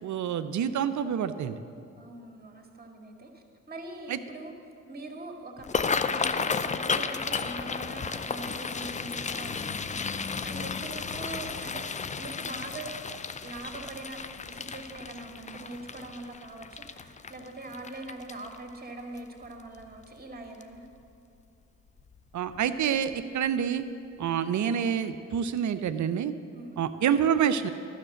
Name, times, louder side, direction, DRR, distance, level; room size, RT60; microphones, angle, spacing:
voice 1, 0.0-1.6 4.1-4.2 22.3-23.8 24.2-26.3 26.8-27.7, right 8 dB, 50° right, 11 dB, 0.6 m, -27 dB
voice 2, 2.0-4.5 4.9-11.9 12.1-12.9 13.2-14.2 14.5-20.9 26.5-26.8, right 2 dB, 25° right, 2 dB, 2.1 m, -42 dB
sound 1, 5.6-18.7 19.2-19.4 19.8-20.2 20.6-20.8 22.0-22.2 22.5-22.7 23.1-23.2, left 5 dB, 20° left, 0.5 m, -33 dB
12.0 x 6.6 x 7.6 m, 2.6 s
hypercardioid pair, 40°, 39 cm